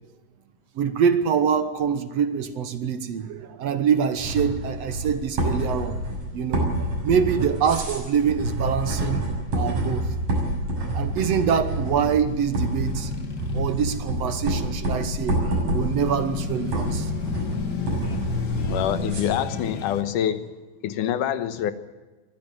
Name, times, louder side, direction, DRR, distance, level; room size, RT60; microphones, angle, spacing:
voice 1, 0.8-6.0 6.3-9.3 9.5-10.1 10.9-13.3 13.5-17.1, right 7 dB, 60° right, 11 dB, 2.0 m, -25 dB
sound 1, 4.2-19.2, right 1 dB, 80° right, 8.4 m, -28 dB
Male speech man speaking / Motorcycle / Idling, 11.1-20.0, left 5 dB, 40° left, 1.9 m, -32 dB
voice 2, 18.7-20.5 20.8-21.7, left 10 dB, 85° left, 12 dB, 2.6 m, -26 dB
23.0 x 15.0 x 9.3 m, 1.2 s
omnidirectional pair, 3.6 m